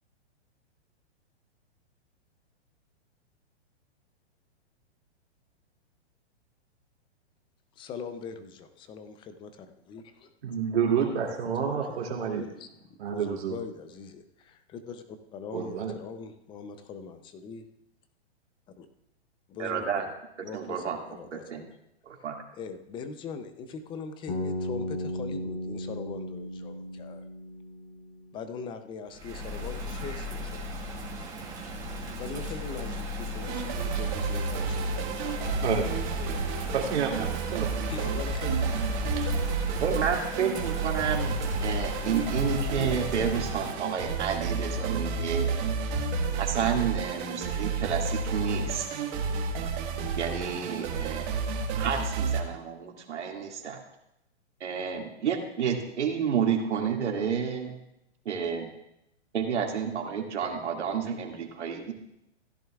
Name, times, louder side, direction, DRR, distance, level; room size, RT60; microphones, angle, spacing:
voice 1, 7.8-10.3 11.6-17.6 18.8-18.9 19.6-20.1 20.4-21.7 22.6-27.2 28.3-30.6 32.0-35.6 37.9-39.1, left 5 dB, 15° left, 9 dB, 0.5 m, -41 dB
voice 2, 10.4-12.4 13.0-13.6 15.5-15.9 35.5-36.3 36.7-37.7 38.4-38.5 39.2-39.3, right 7 dB, 70° right, 0 dB, 2.5 m, -29 dB
voice 3, 19.6-20.0 20.5-21.0 21.3-21.6 22.0-22.4 39.8-41.3 41.6-45.6 46.4-48.9 50.1-51.2 51.7-53.8 54.6-57.7 58.3-58.7 59.3-61.9, right 7 dB, 85° right, 1 dB, 2.2 m, -30 dB
Bass guitar, 24.3-28.4, left 1 dB, 60° left, 4.2 m, -35 dB
Bird vocalization bird call bird song / Rain, 29.1-43.7, left 1 dB, 10° right, 2.2 m, -37 dB
sound 1, 33.4-52.4, right 4 dB, 45° right, 1.7 m, -31 dB
15.5 x 10.5 x 2.4 m, 0.82 s
hypercardioid pair, 145°, 34 cm